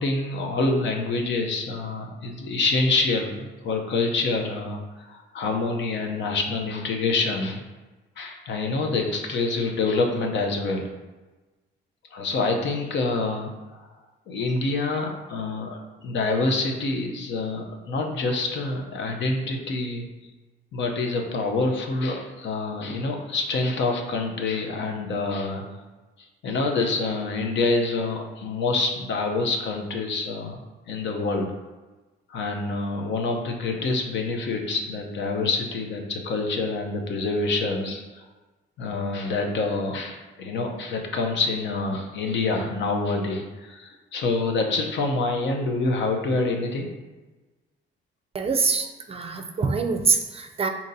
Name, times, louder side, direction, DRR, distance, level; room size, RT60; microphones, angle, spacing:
voice 1, 0.0-4.8 5.1-7.6 8.2-10.8 12.1-13.5 14.3-20.1 20.7-25.6 26.4-30.6 30.9-31.5 32.3-38.3 38.8-46.9, left 3 dB, 65° left, 2 dB, 0.7 m, -26 dB
voice 2, 48.3-50.7, right 5 dB, 30° right, 5 dB, 0.5 m, -24 dB
4.0 x 2.9 x 3.9 m, 1.2 s
cardioid pair, 90°, 20 cm